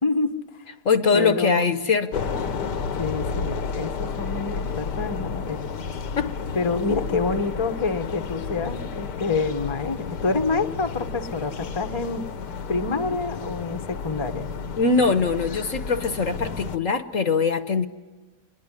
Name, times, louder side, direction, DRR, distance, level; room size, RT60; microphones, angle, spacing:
voice 1, 0.0-0.7 1.1-1.7 3.0-5.7 6.5-12.3 12.7-14.5, left 4 dB, 20° left, 6 dB, 1.0 m, -27 dB
voice 2, 0.8-2.5 6.2-6.4 14.8-17.9, left 4 dB, 55° left, 10 dB, 1.4 m, -22 dB
sound 1, 2.1-16.8, left 5 dB, 75° left, 1.8 m, -32 dB
27.5 x 21.5 x 9.9 m, 1.3 s
omnidirectional pair, 1.8 m